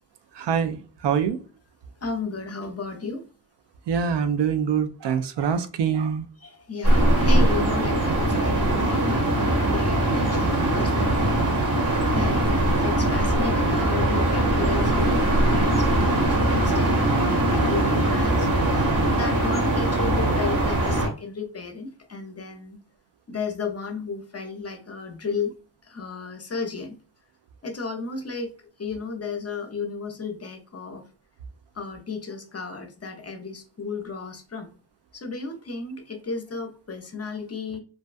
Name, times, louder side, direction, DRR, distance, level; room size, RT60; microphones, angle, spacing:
voice 1, 0.3-1.4 3.9-6.3, right 7 dB, 65° right, 0.5 m, -24 dB
voice 2, 2.0-3.3 6.4-18.5 19.1-22.8 23.3-25.5 25.8-27.0 27.6-31.1 31.7-34.7 35.1-37.8, left 4 dB, 35° left, 0.6 m, -34 dB
sound 1, 6.8-21.1, right 1 dB, 40° right, 1.1 m, -21 dB
2.6 x 2.2 x 2.4 m
cardioid pair, 65°, 46 cm